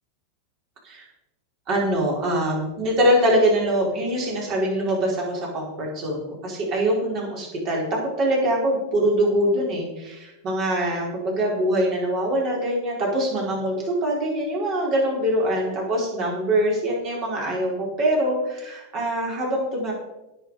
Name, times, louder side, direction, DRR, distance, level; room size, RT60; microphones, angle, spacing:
voice 1, 1.7-19.9, right 1 dB, 45° right, -3 dB, 4.6 m, -23 dB
18.0 x 6.1 x 5.0 m, 0.98 s
hypercardioid pair, 115°, 0 cm